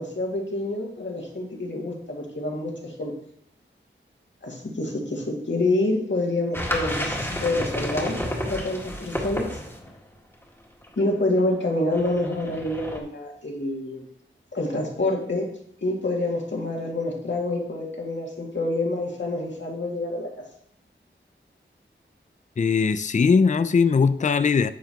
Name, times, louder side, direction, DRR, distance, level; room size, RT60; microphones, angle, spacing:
voice 1, 0.0-3.1 4.4-9.6 11.0-14.0 14.5-15.5 15.8-20.3, left 2 dB, 65° left, 2.1 m, -27 dB
sound 1, 6.5-10.0 10.4-10.5 10.8-11.0 11.4-11.5 11.9-13.0, equal, 10° left, 1.8 m, -31 dB
voice 2, 22.6-24.7, left 5 dB, 40° left, 0.4 m, -20 dB
10.0 x 7.0 x 3.0 m
wide cardioid pair, 65°, 20 cm